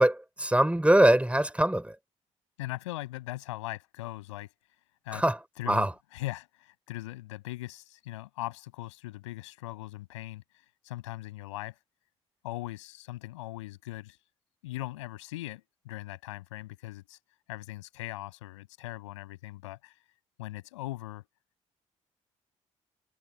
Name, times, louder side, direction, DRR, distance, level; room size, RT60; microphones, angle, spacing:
voice 1, 0.0-1.9 5.1-5.4 5.7-5.9, right 1 dB, 10° right, 4.6 m, -22 dB
voice 2, 2.6-4.5 5.0-5.2 5.6-10.4 10.8-11.8 12.4-14.2 14.6-17.2 17.5-19.9 20.4-21.3, left 17 dB, 85° left, 6.7 m, -40 dB
hypercardioid pair, 45°, 15 cm